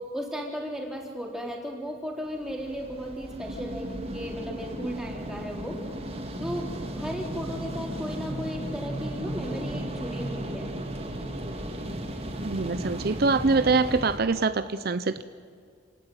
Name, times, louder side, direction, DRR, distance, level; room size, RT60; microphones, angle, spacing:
voice 1, 0.1-5.8 6.4-10.8, equal, 5° right, -1 dB, 3.9 m, -35 dB
sound 1, 2.2-14.2, right 1 dB, 30° right, 3.0 m, -35 dB
voice 2, 12.4-15.2, right 4 dB, 55° right, 12 dB, 0.7 m, -25 dB
28.0 x 18.0 x 9.3 m, 2.1 s
head